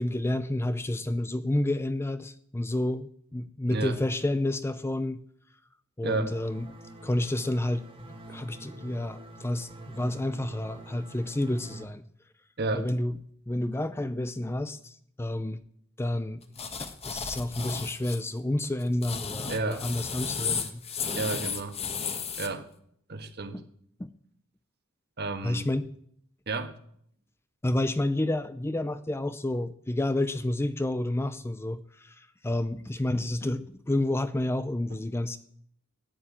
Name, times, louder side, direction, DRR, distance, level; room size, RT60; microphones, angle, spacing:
voice 1, 0.0-5.2 6.0-6.7 7.0-7.9 8.3-12.0 12.7-13.2 13.5-15.6 16.0-16.5 16.8-20.8 23.5-23.7 24.0-24.1 25.4-25.9 27.6-35.4, left 1 dB, 10° left, 13 dB, 0.5 m, -30 dB
voice 2, 6.0-6.3 12.6-12.9 19.5-19.8 21.1-21.8 22.4-22.6 23.1-23.6 25.2-25.7 26.5-26.7, right 3 dB, 50° right, 9 dB, 1.4 m, -31 dB
sound 1, 6.3-11.8, right 2 dB, 25° right, 1.8 m, -45 dB
sound 2, 16.6-18.2 18.8-22.5, left 6 dB, 30° left, 1.3 m, -33 dB
12.5 x 9.7 x 8.8 m, 0.67 s
head